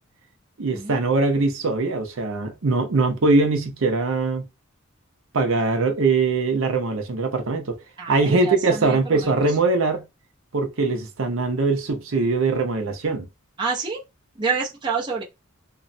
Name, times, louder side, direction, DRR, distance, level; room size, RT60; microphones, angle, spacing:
voice 1, 0.6-4.4 5.3-7.8 8.1-10.0 10.5-13.3, right 3 dB, 70° right, 0.7 m, -22 dB
voice 2, 8.0-9.3 13.6-14.0 14.4-15.2, right 5 dB, 20° right, 0.6 m, -27 dB
3.0 x 2.0 x 2.6 m
head